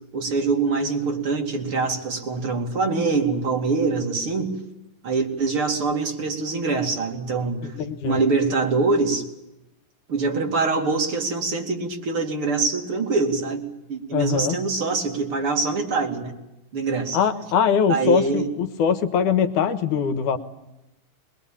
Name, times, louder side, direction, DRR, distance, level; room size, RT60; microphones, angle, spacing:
voice 1, 0.1-4.6 5.0-7.7 8.0-9.3 10.1-16.3 16.7-17.2 17.9-18.5, right 4 dB, 45° right, 2 dB, 3.5 m, -24 dB
voice 2, 7.6-8.2 14.1-14.6 17.1-20.4, left 7 dB, 80° left, 9 dB, 2.8 m, -22 dB
22.0 x 21.5 x 8.8 m, 0.93 s
omnidirectional pair, 3.6 m